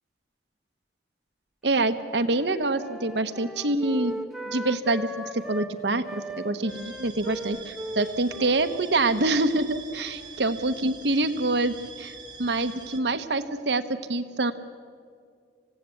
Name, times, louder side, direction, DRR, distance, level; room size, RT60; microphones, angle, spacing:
voice 1, 1.6-13.8 14.1-14.5, right 2 dB, 75° right, 10 dB, 1.1 m, -26 dB
Wind instrument woodwind instrument, 2.2-5.7 6.0-10.5, equal, ahead, 1.3 m, -38 dB
sound 1, 6.7-13.0, right 5 dB, 25° right, 1.9 m, -44 dB
27.0 x 17.0 x 8.4 m, 2.1 s
head